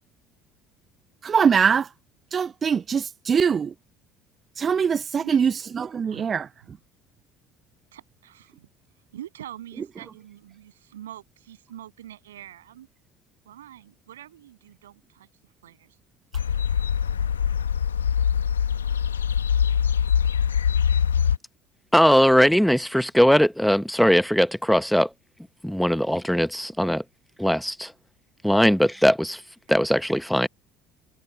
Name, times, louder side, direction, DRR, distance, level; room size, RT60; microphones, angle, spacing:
voice 1, 1.2-1.9 2.3-3.7 4.6-6.8, right 6 dB, 35° right, 0.5 m, -23 dB
voice 2, 5.1-5.5 6.0-6.4 7.9-8.7 9.1-12.9 13.5-15.3 15.6-16.0, right 12 dB, 75° right, 7.4 m, -44 dB
sound 1, 16.3-21.4, left 8 dB, 85° left, 1.3 m, -23 dB
voice 3, 21.9-25.1 25.6-27.0 27.4-27.9 28.4-29.4 29.7-30.5, equal, ahead, 1.0 m, -20 dB
figure-of-eight pair, 60°, 0 cm